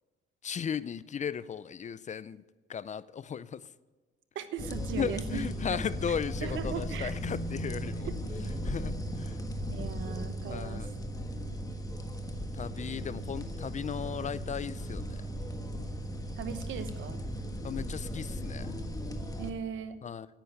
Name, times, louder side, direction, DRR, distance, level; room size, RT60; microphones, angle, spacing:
voice 1, 0.4-2.4 2.7-3.7 4.9-8.1 8.6-9.4 10.5-10.9 12.5-15.3 17.6-18.8 20.0-20.3, left 7 dB, 35° left, 18 dB, 0.4 m, -36 dB
voice 2, 4.3-5.8 6.4-7.1 8.0-8.2 9.7-10.9 16.4-17.2 19.4-20.0, right 7 dB, 75° right, 11 dB, 1.1 m, -38 dB
sound 1, 4.6-19.5, equal, 20° left, 1.5 m, -36 dB
10.5 x 9.3 x 8.4 m, 1.3 s
cardioid pair, 90°, 20 cm